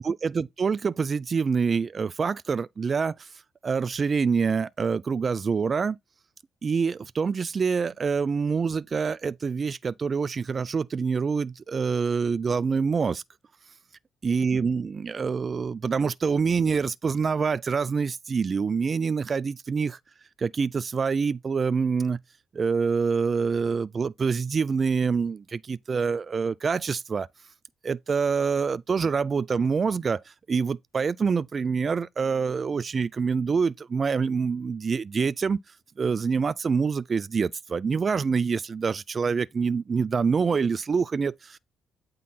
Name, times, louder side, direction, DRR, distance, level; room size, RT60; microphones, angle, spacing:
voice 1, 0.0-3.3 3.6-6.0 6.6-13.2 14.2-20.0 20.4-22.2 22.5-27.3 27.8-35.6 36.0-41.6, right 5 dB, 40° right, 0.3 m, -26 dB
8.5 x 3.8 x 4.1 m
cardioid pair, 90°, 0 cm